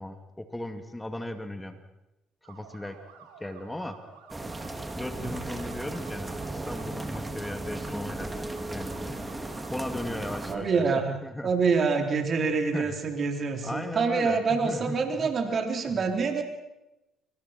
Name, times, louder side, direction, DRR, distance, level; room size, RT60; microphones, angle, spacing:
voice 1, 0.0-1.8 2.5-3.0 3.4-4.0 4.9-9.2 9.7-11.5 12.7-12.9 13.6-15.3 15.8-15.9, left 1 dB, 10° left, 7 dB, 2.4 m, -37 dB
sound 1, 2.4-10.5, right 6 dB, 80° right, 3.3 m, -51 dB
sound 2, 4.3-10.5, right 2 dB, 15° right, 2.6 m, -36 dB
voice 2, 10.5-11.2 11.4-16.4, right 4 dB, 50° right, 4 dB, 3.8 m, -26 dB
26.0 x 25.0 x 4.5 m, 0.94 s
hypercardioid pair, 55°, 0 cm